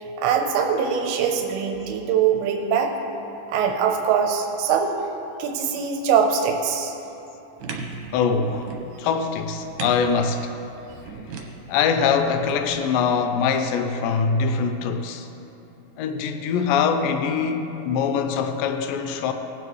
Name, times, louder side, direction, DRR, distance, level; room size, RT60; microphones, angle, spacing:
voice 1, 0.2-2.9 3.5-4.9 5.4-6.9, right 7 dB, 90° right, 2.7 m, -22 dB
sound 1, 7.6-12.8, right 4 dB, 70° right, 2.2 m, -38 dB
voice 2, 8.1-8.7 9.0-10.5 11.7-15.3 16.0-19.3, left 6 dB, 80° left, 2.1 m, -23 dB
19.5 x 7.8 x 3.2 m
omnidirectional pair, 4.5 m